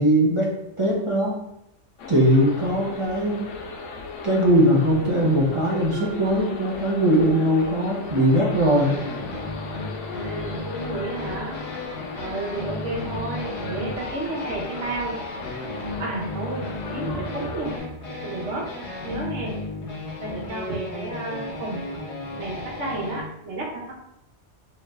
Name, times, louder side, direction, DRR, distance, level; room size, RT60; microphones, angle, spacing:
voice 1, 0.0-1.4 2.1-3.5 4.2-9.0, equal, 30° right, -3 dB, 0.7 m, -20 dB
sound 1, 2.0-17.8, left 4 dB, 85° left, 1.0 m, -37 dB
Marimba xylophone, 5.9-7.7, right 10 dB, 90° right, 1.3 m, -39 dB
sound 2, 8.8-23.2, left 2 dB, 65° left, 1.2 m, -34 dB
voice 2, 10.1-11.6 12.2-15.2 16.0-17.8 18.2-18.7 19.0-19.6 20.2-21.9 22.4-23.9, right 2 dB, 70° right, -2 dB, 1.2 m, -32 dB
5.2 x 3.1 x 2.3 m, 0.82 s
omnidirectional pair, 1.2 m